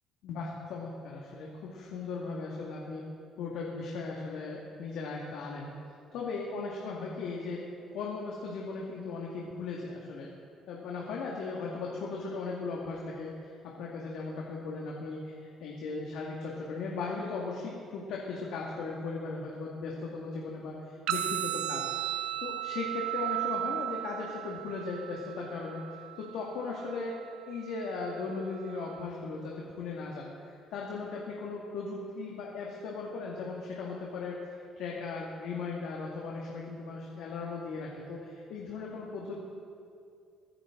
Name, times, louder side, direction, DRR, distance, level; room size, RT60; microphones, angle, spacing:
voice 1, 0.2-3.0 3.4-5.7 6.1-7.6 7.9-10.3 10.7-21.8 22.4-27.2 27.5-39.3, left 4 dB, 80° left, -3 dB, 1.8 m, -37 dB
sound 1, 21.1-29.1, right 13 dB, 85° right, 0.6 m, -36 dB
23.5 x 9.9 x 3.8 m, 2.4 s
cardioid pair, 110°, 0 cm